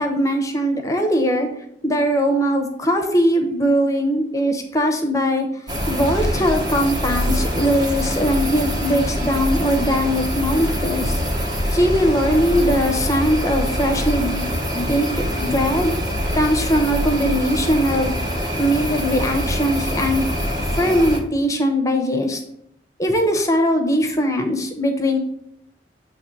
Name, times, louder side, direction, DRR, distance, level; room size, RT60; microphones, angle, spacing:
voice 1, 0.0-1.5 1.8-11.2 11.7-15.1 15.4-15.9 16.3-18.1 18.6-20.3 20.7-22.4 23.0-25.2, equal, 20° left, 4 dB, 0.8 m, -20 dB
sound 1, 5.7-21.2, equal, 25° right, 1.1 m, -24 dB
7.9 x 3.2 x 6.3 m, 0.74 s
head